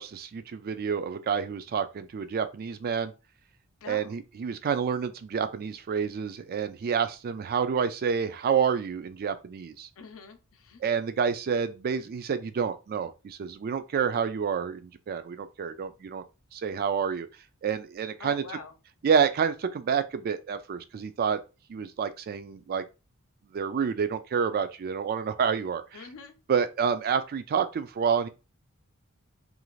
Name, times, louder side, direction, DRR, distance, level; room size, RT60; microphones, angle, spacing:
voice 1, 0.0-3.1 3.9-9.9 10.8-16.2 16.5-17.3 17.6-18.4 19.0-21.4 21.7-22.8 23.5-25.8 26.5-28.3, right 6 dB, 45° right, 0.3 m, -28 dB
voice 2, 3.8-4.2 10.0-10.8 18.2-18.7 25.9-26.3, left 4 dB, 65° left, 0.6 m, -44 dB
2.5 x 2.4 x 3.1 m
head